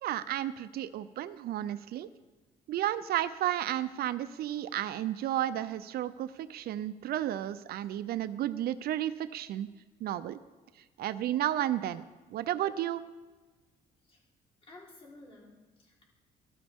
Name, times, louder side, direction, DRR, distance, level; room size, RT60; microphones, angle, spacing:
voice 1, 0.0-2.1 2.7-9.7 10.0-10.4 11.0-12.0 12.3-13.0, right 12 dB, 70° right, 14 dB, 0.5 m, -32 dB
voice 2, 14.6-16.0, left 2 dB, 35° left, -3 dB, 3.9 m, -54 dB
13.5 x 12.5 x 3.6 m, 1.3 s
cardioid pair, 115°, 17 cm